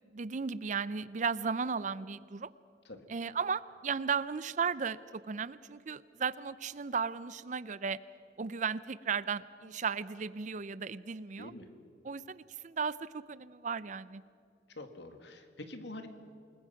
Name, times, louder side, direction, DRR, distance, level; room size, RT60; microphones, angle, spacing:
voice 1, 0.1-2.5 3.1-8.0 8.4-11.5 12.0-14.2, right 5 dB, 40° right, 17 dB, 0.5 m, -35 dB
voice 2, 11.4-11.7 14.8-16.1, left 2 dB, 65° left, 7 dB, 2.1 m, -45 dB
28.0 x 20.5 x 5.9 m, 2.4 s
head